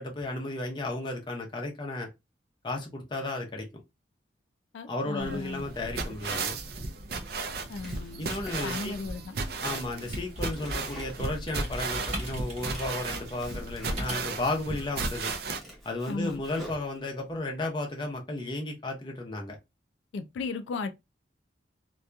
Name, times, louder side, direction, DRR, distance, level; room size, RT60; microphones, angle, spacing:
voice 1, 0.0-2.1 2.6-3.7 4.9-6.6 8.2-9.0 9.6-15.3 15.8-19.6, left 2 dB, 25° left, 0.6 m, -34 dB
voice 2, 4.7-5.7 7.7-8.3 8.6-9.4 16.1-16.4 20.1-20.9, left 4 dB, 85° left, 0.3 m, -35 dB
sound 1, 5.2-15.6, right 3 dB, 55° right, 0.4 m, -35 dB
Domestic sounds home sounds, 7.7-9.1 9.4-12.0 12.3-14.3 14.9-15.0 15.4-17.3, equal, ahead, 0.8 m, -48 dB
sound 2, 10.1-14.5, right 1 dB, 35° right, 1.0 m, -39 dB
2.7 x 2.2 x 2.2 m
head